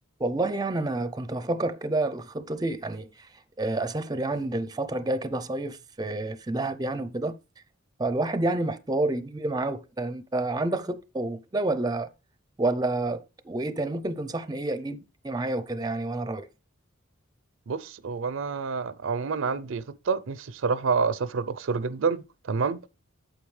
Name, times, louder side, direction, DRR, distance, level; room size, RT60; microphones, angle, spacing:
voice 1, 0.2-3.3 3.6-7.3 8.0-12.1 12.6-16.5, right 2 dB, 20° right, 0.5 m, -29 dB
voice 2, 17.7-22.8, right 5 dB, 80° right, 0.5 m, -28 dB
8.6 x 7.6 x 3.2 m
head